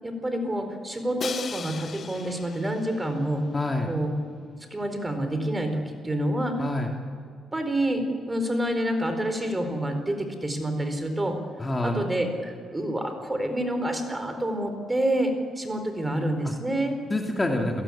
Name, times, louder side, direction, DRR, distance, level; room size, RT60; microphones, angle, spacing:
voice 1, 0.0-3.4 3.9-4.1 4.7-6.6 7.5-11.4 11.8-17.0, right 1 dB, 15° right, 7 dB, 4.3 m, -28 dB
Crash cymbal, 1.2-3.2, left 6 dB, 50° left, 1.1 m, -37 dB
voice 2, 3.5-3.9 6.6-6.9 11.6-12.0 16.4-16.5 17.1-17.8, left 2 dB, 20° left, 1 dB, 2.5 m, -27 dB
29.5 x 17.0 x 8.7 m, 2.2 s
cardioid pair, 90°, 0 cm